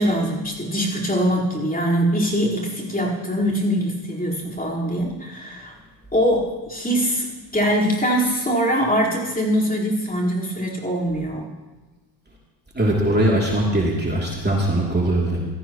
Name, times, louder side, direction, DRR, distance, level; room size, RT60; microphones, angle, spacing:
voice 1, 0.0-5.7 6.1-7.3 7.5-11.5, equal, 20° left, -5 dB, 4.4 m, -22 dB
voice 2, 12.7-15.4, right 1 dB, 25° right, -3 dB, 3.0 m, -20 dB
16.5 x 13.5 x 3.1 m, 1.2 s
supercardioid pair, 60°, 44 cm